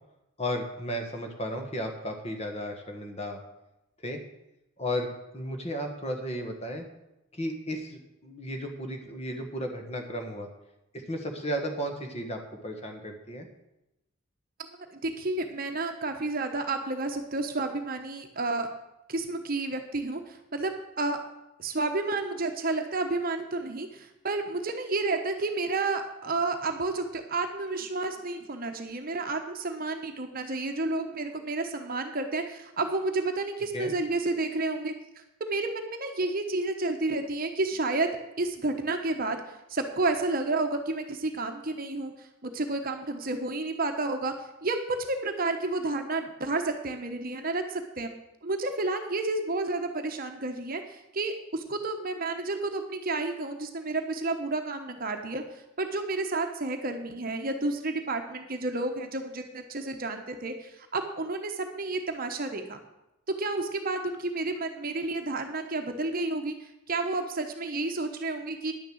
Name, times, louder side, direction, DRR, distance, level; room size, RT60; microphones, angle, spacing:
voice 1, 0.4-3.4 4.0-4.2 4.8-6.8 7.3-10.5 11.1-13.5 33.7-33.9, equal, 30° left, 4 dB, 1.5 m, -34 dB
voice 2, 14.7-18.7 19.1-21.2 21.6-34.9 35.4-38.1 38.4-39.4 39.7-44.3 44.6-48.1 48.4-55.4 55.8-62.8 63.4-68.7, right 2 dB, 40° right, 5 dB, 1.0 m, -31 dB
10.5 x 6.6 x 7.9 m, 0.90 s
head